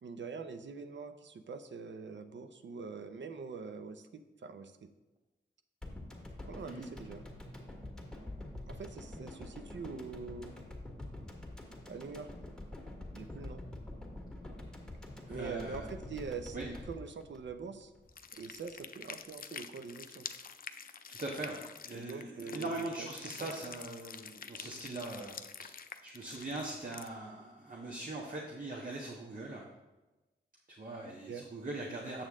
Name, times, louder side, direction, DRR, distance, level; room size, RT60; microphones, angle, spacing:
voice 1, 0.0-4.9 6.5-7.2 8.7-10.6 11.9-12.3 13.1-13.7 15.3-17.9 18.3-20.3 21.9-23.1 23.4-23.5 31.3-31.4, right 5 dB, 65° right, 9 dB, 0.7 m, -44 dB
sound 1, 5.8-18.1 18.4-18.5, left 1 dB, 5° left, 1.7 m, -46 dB
voice 2, 15.3-15.9 16.5-16.7 21.1-25.7 26.0-29.7 30.8-32.3, right 2 dB, 45° right, -2 dB, 1.3 m, -41 dB
sound 2, 18.1-27.1, left 6 dB, 45° left, 0.5 m, -47 dB
7.7 x 6.4 x 3.7 m, 1.1 s
cardioid pair, 55°, 20 cm